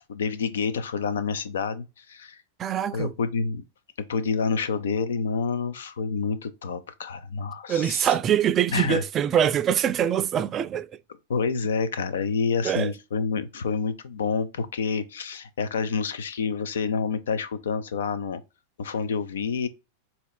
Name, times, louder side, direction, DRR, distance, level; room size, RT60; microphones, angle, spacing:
voice 1, 0.1-2.4 2.9-3.6 4.1-8.1 8.7-9.0 11.3-18.4 18.8-19.7, left 5 dB, 80° left, 0.5 m, -28 dB
voice 2, 2.6-3.1 7.7-10.9 12.6-12.9, right 9 dB, 30° right, 0.3 m, -24 dB
4.2 x 2.8 x 2.2 m
hypercardioid pair, 110°, 0 cm